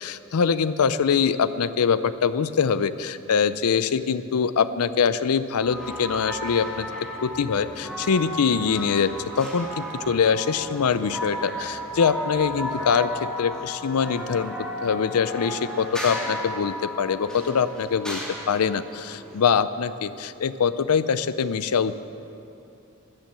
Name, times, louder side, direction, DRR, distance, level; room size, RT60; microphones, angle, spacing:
voice 1, 0.0-6.9 7.2-9.1 9.4-14.5 14.8-18.2 18.5-21.9, left 6 dB, 85° left, 14 dB, 0.5 m, -23 dB
sound 1, 5.6-19.4, equal, 5° left, 2.7 m, -34 dB
14.0 x 10.5 x 7.5 m, 2.8 s
head